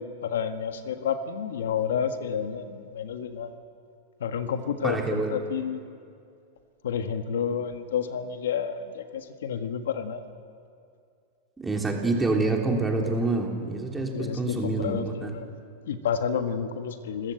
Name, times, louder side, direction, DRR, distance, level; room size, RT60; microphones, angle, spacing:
voice 1, 0.0-3.5 4.2-5.8 6.8-10.2 14.1-15.5 15.9-17.3, left 7 dB, 85° left, 8 dB, 1.6 m, -30 dB
voice 2, 4.8-5.3 11.6-15.3, right 3 dB, 10° right, 0 dB, 3.3 m, -27 dB
28.0 x 15.0 x 7.9 m, 2.4 s
hypercardioid pair, 135°, 0 cm